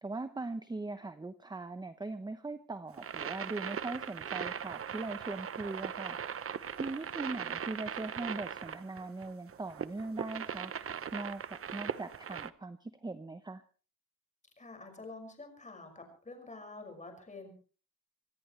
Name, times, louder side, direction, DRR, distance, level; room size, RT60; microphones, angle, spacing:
voice 1, 0.0-6.2 6.5-13.6, right 3 dB, 10° right, 10 dB, 0.8 m, -40 dB
sound 1, 2.9-12.5, right 8 dB, 40° right, 0.8 m, -39 dB
voice 2, 14.6-17.5, left 3 dB, 20° left, 5 dB, 5.9 m, -48 dB
25.5 x 17.0 x 3.2 m, 0.39 s
cardioid pair, 130°, 35 cm